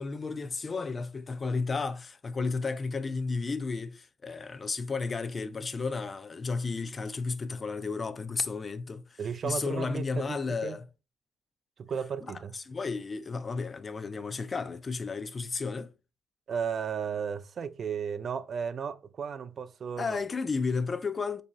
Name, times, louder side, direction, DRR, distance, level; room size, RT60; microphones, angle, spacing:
voice 1, 0.0-10.8 12.3-15.9 20.0-21.4, left 4 dB, 35° left, 0.3 m, -33 dB
voice 2, 9.2-10.8 11.8-12.6 16.5-20.2, right 7 dB, 50° right, 0.3 m, -34 dB
3.6 x 2.7 x 3.0 m
cardioid pair, 90°, 0 cm